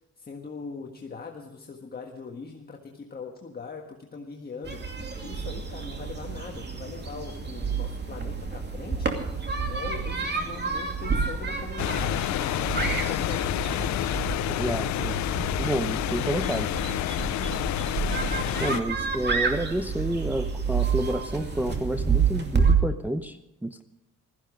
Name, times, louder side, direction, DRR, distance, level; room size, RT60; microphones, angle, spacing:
voice 1, 0.2-4.8 5.2-14.0, left 4 dB, 30° left, 1 dB, 1.6 m, -41 dB
sound 1, 4.6-22.7, right 5 dB, 35° right, 2.6 m, -29 dB
sound 2, 11.8-18.8, left 15 dB, 70° left, 0.5 m, -29 dB
voice 2, 14.5-16.7 18.6-23.8, right 1 dB, 5° right, 7 dB, 0.7 m, -30 dB
16.0 x 14.5 x 5.1 m, 0.84 s
cardioid pair, 90°, 30 cm